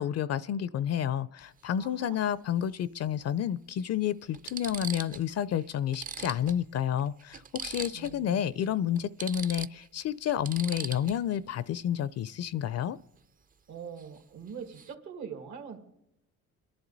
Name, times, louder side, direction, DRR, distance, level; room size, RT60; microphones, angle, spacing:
voice 1, 0.0-13.0, left 10 dB, 55° left, 18 dB, 0.4 m, -30 dB
sound 1, 1.4-1.6 3.1-3.2 3.8-3.9 4.3-5.3 5.6-5.7 5.9-8.2 8.5-8.7 9.0-11.4 14.0-14.2 14.5-14.9, right 6 dB, 30° right, 0.4 m, -41 dB
voice 2, 1.8-2.3 7.9-8.7 13.7-15.8, right 6 dB, 75° right, 4 dB, 2.0 m, -43 dB
27.0 x 11.0 x 4.0 m, 0.82 s
cardioid pair, 90°, 30 cm